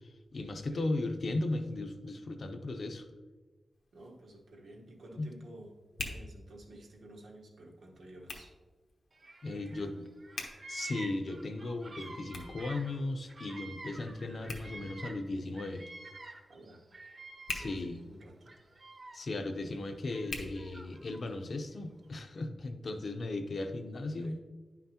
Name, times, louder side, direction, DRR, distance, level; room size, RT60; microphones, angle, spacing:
voice 1, 0.0-3.1 5.2-5.3 9.4-9.9 10.7-15.9 17.5-18.0 19.1-24.4, left 2 dB, 50° left, 6 dB, 0.6 m, -36 dB
Hands, 3.7-21.4, left 3 dB, 80° left, 1.1 m, -49 dB
voice 2, 3.9-5.8 6.0-8.5 9.5-10.1 16.5-16.8 17.5-18.6 24.2-24.4, right 1 dB, 80° right, 0 dB, 1.2 m, -52 dB
Bird vocalization bird call bird song, 9.2-9.9 10.2-15.3 15.5-18.0 18.4-19.4 20.1-21.2, right 3 dB, 35° right, 0.6 m, -48 dB
9.9 x 5.8 x 2.9 m, 1.3 s
wide cardioid pair, 145°, 0 cm